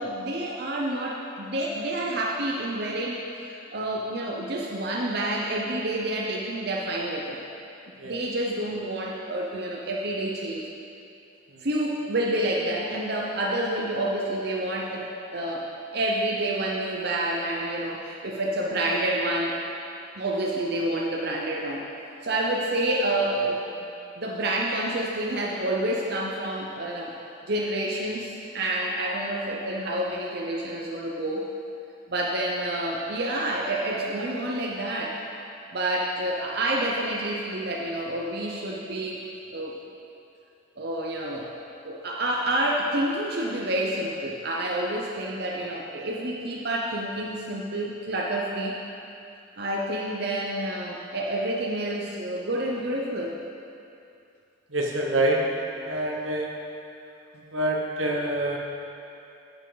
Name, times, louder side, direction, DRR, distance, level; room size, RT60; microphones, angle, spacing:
voice 1, 0.0-7.4 8.0-10.6 11.6-19.6 20.2-21.8 22.2-23.9 24.2-27.1 27.5-31.6 32.1-35.2 35.7-39.2 39.5-39.8 40.8-41.6 41.8-48.8 49.6-53.4 56.0-56.2, right 1 dB, 55° right, -2 dB, 0.8 m, -28 dB
voice 2, 54.7-55.4 55.8-56.5 57.5-58.6, right 1 dB, 85° right, 0 dB, 1.2 m, -25 dB
11.0 x 6.9 x 3.9 m, 2.7 s
head